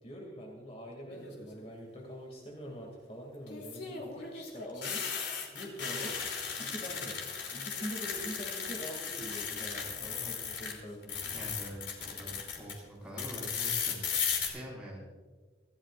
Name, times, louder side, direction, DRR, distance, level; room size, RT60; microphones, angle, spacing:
voice 1, 0.0-5.0 5.5-6.1 6.6-7.2 7.5-11.3, equal, 35° left, 0 dB, 2.5 m, -44 dB
sound 1, 1.1-1.6 3.5-10.7 11.0-12.7 13.2-14.5, left 6 dB, 80° left, 3.1 m, -36 dB
voice 2, 11.3-15.1, equal, 5° right, -4 dB, 5.0 m, -44 dB
25.5 x 15.0 x 2.5 m, 1.4 s
head